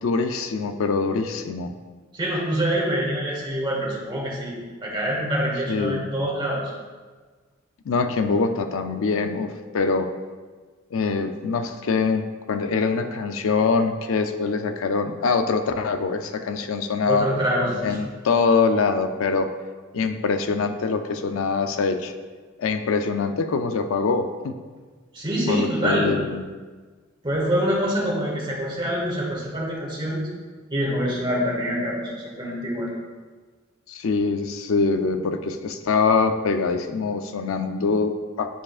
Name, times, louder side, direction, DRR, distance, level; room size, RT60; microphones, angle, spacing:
voice 1, 0.0-1.7 5.7-6.1 7.9-10.1 10.9-17.3 17.8-19.5 19.9-22.1 22.6-24.6 25.5-26.4 33.9-38.6, left 4 dB, 75° left, 7 dB, 0.4 m, -24 dB
voice 2, 2.1-4.5 4.8-6.6 17.1-18.0 25.1-26.2 27.2-30.2 30.7-32.9, equal, 25° right, -4 dB, 1.6 m, -25 dB
9.9 x 4.8 x 2.4 m, 1.4 s
head